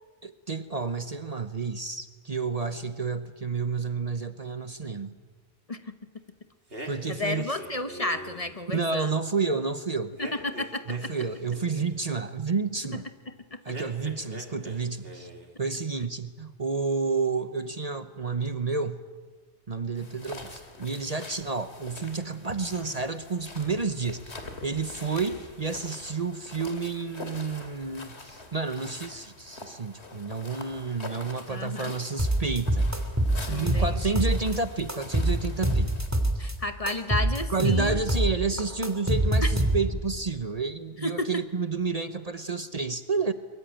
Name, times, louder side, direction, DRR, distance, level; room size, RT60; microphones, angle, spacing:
voice 1, 0.2-5.1 6.9-7.5 8.7-10.2 10.9-13.0 13.6-15.3 15.6-19.0 19.7-32.9 33.5-35.9 37.5-43.3, right 4 dB, 35° right, 10 dB, 1.0 m, -30 dB
sound 1, 6.7-8.5 10.2-12.0 13.7-14.8 15.0-15.6, equal, 60° right, 3.1 m, -42 dB
voice 2, 7.1-9.1 10.2-11.1 13.3-13.6 31.5-31.9 33.5-34.3 36.4-38.0 39.4-39.5 41.0-41.3, left 2 dB, 35° left, 9 dB, 1.1 m, -32 dB
sound 2, 20.0-36.1, left 2 dB, 75° left, 2.9 m, -45 dB
sound 3, 32.2-34.6 34.9-36.5 36.9-40.1, right 1 dB, 15° right, 2.8 m, -25 dB
23.0 x 22.5 x 9.1 m, 1.4 s
omnidirectional pair, 1.1 m